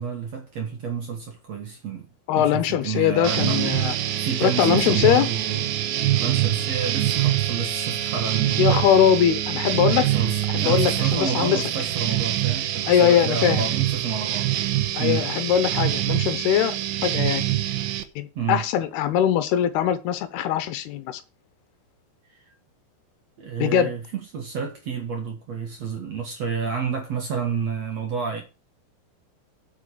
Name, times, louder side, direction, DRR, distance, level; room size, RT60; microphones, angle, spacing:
voice 1, 0.0-2.1 2.4-5.7 6.1-8.8 10.1-14.5 15.0-15.3 18.4-18.6 23.4-28.4, right 6 dB, 55° right, 2.1 m, -30 dB
voice 2, 2.3-3.9 4.4-5.3 8.6-10.1 10.5-11.6 12.9-13.6 15.0-16.8 17.0-17.5 18.2-21.2 23.6-23.9, left 10 dB, 80° left, 2.7 m, -21 dB
sound 1, 3.2-18.0, right 13 dB, 75° right, 1.9 m, -25 dB
8.1 x 6.7 x 6.4 m
omnidirectional pair, 4.9 m